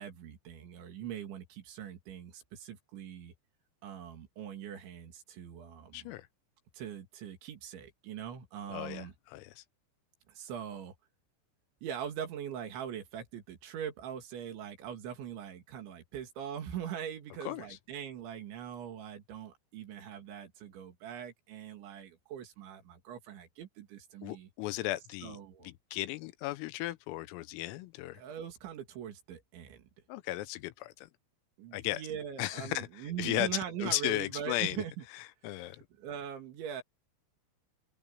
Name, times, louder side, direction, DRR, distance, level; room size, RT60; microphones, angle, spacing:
voice 1, 0.0-3.3 3.8-6.1 6.7-9.1 10.3-10.9 11.8-24.5 25.2-25.7 28.1-29.9 31.6-35.0 35.5-36.8, right 9 dB, 65° right, 4.5 m, -42 dB
voice 2, 5.9-6.3 8.7-9.6 17.5-17.7 24.2-25.4 25.6-28.2 30.1-31.1 31.7-32.0 32.4-34.8 35.4-35.9, left 17 dB, 85° left, 3.5 m, -35 dB
open air
omnidirectional pair, 6.0 m